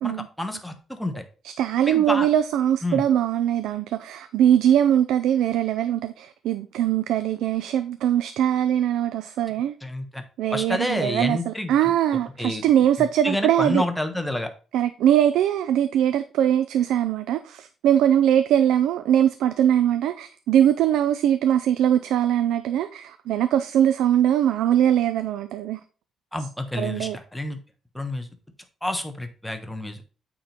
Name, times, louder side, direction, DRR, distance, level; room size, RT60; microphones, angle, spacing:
voice 1, 0.0-1.2 1.9-2.3 2.8-3.0 9.8-10.2 10.5-11.7 12.4-12.6 13.0-14.5 26.3-27.6 27.9-28.3 28.8-30.0, left 1 dB, 5° left, 1.3 m, -29 dB
voice 2, 1.4-9.7 10.4-13.8 14.7-25.8 26.8-27.2, right 10 dB, 85° right, 0.4 m, -21 dB
8.7 x 3.7 x 4.4 m
cardioid pair, 90°, 0 cm